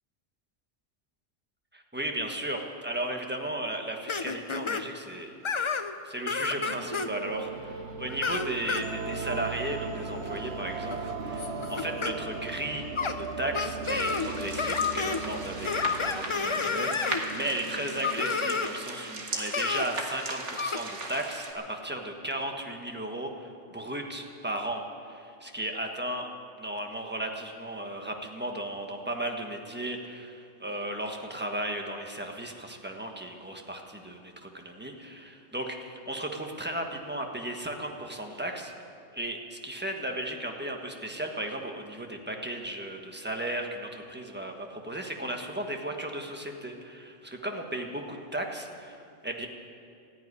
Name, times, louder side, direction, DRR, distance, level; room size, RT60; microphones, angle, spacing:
voice 1, 1.7-5.3 6.0-12.9 13.1-26.3 26.6-38.7 39.1-49.5, right 1 dB, 10° right, 2 dB, 1.3 m, -35 dB
sound 1, 4.1-4.8 5.4-5.9 6.3-7.1 8.1-8.8 10.3-10.5 10.9-12.1 13.0-13.1 13.5-14.3 14.6-15.2 15.6-17.2 18.0-18.7 19.5-19.9 20.6-20.8, left 5 dB, 35° left, 0.5 m, -30 dB
sound 2, 6.6-19.6, right 4 dB, 70° right, 1.8 m, -38 dB
sound 3, 13.8-21.5, right 3 dB, 90° right, 2.0 m, -38 dB
14.5 x 9.8 x 9.8 m, 2.5 s
omnidirectional pair, 1.2 m